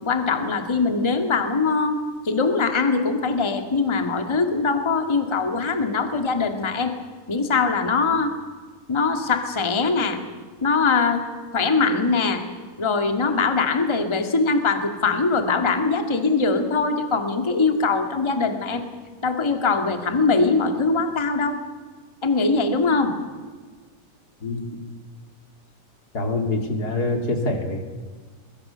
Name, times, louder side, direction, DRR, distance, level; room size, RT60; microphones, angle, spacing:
voice 1, 0.0-2.0 2.2-6.9 7.3-8.3 8.9-10.2 10.6-11.2 11.5-12.4 12.8-18.8 19.2-21.6 22.2-23.1, left 4 dB, 10° left, 6 dB, 1.4 m, -22 dB
voice 2, 26.1-27.8, left 2 dB, 30° left, 5 dB, 2.6 m, -25 dB
23.0 x 22.0 x 6.9 m, 1.5 s
omnidirectional pair, 3.7 m